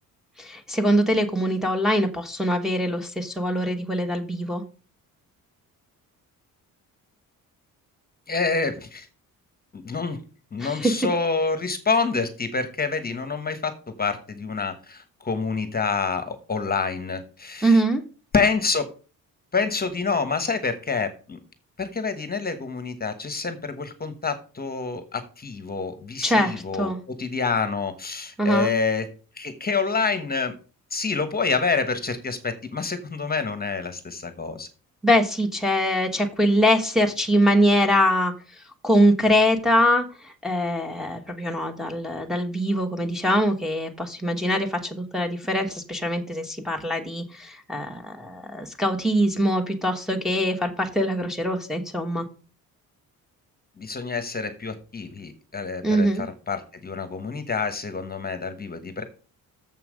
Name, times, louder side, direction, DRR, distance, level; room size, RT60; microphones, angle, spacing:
voice 1, 0.4-4.6 10.6-10.9 17.6-18.0 26.2-27.0 28.4-28.7 35.0-38.3 38.8-52.2 55.8-56.2, equal, ahead, 1 dB, 1.2 m, -23 dB
voice 2, 8.3-9.1 9.7-10.2 10.5-13.7 14.0-17.8 18.3-18.9 19.5-21.4 21.8-29.1 29.3-30.5 30.9-34.7 53.8-59.0, left 4 dB, 25° left, 9 dB, 1.2 m, -27 dB
7.2 x 5.7 x 6.4 m, 0.37 s
cardioid pair, 120°, 35 cm